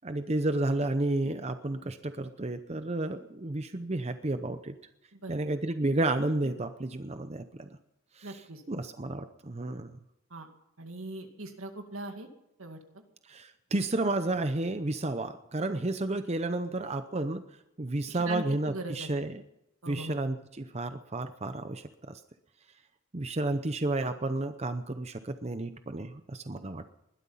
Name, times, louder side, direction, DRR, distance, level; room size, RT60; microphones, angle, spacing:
voice 1, 0.0-4.8 5.3-7.7 8.2-8.3 8.7-9.9 13.3-17.4 17.8-19.4 19.9-22.2 23.1-26.9, right 2 dB, 30° right, 9 dB, 0.7 m, -31 dB
voice 2, 5.1-5.4 8.2-8.6 10.3-10.5 10.8-12.3 12.6-13.0 18.1-19.1 19.8-20.2, right 2 dB, 75° right, 5 dB, 2.2 m, -40 dB
21.0 x 12.0 x 5.7 m, 0.89 s
head